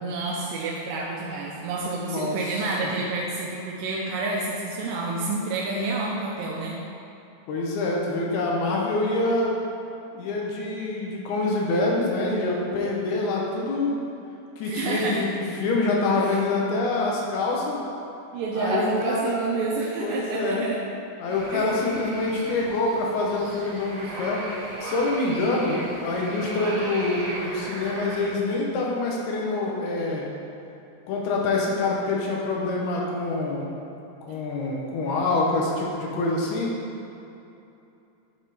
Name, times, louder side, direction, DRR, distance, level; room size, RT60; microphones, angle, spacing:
voice 1, 0.0-6.8 14.6-15.3 16.1-16.4 18.3-20.8 21.5-21.7, right 3 dB, 80° right, -3 dB, 2.1 m, -29 dB
voice 2, 2.0-2.4 2.8-2.9 7.5-9.6 10.1-14.0 14.6-17.8 18.5-19.4 20.0-20.7 21.2-24.4 24.8-30.3 31.1-33.8 34.3-36.7, left 2 dB, 85° left, -3 dB, 3.0 m, -26 dB
sound 1, 21.3-28.3, right 1 dB, 55° right, 1.5 m, -37 dB
9.5 x 4.3 x 4.2 m, 2.8 s
omnidirectional pair, 4.4 m